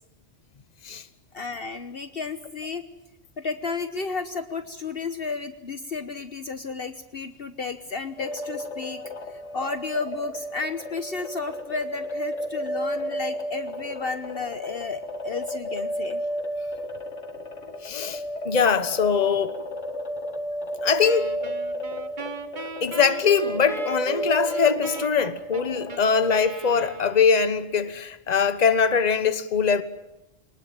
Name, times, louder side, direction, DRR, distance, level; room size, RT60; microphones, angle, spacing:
voice 1, 1.3-2.9 3.4-9.0 9.5-16.2, left 4 dB, 50° left, 1.2 m, -32 dB
sound 1, 8.2-26.6, equal, 65° left, 2.3 m, -33 dB
voice 2, 8.8-9.3 17.8-19.6 20.8-21.3 22.8-29.8, left 6 dB, 35° left, 1.2 m, -22 dB
Wind instrument woodwind instrument, 21.0-27.6, right 3 dB, 40° right, 1.5 m, -38 dB
23.5 x 20.0 x 8.9 m
omnidirectional pair, 1.3 m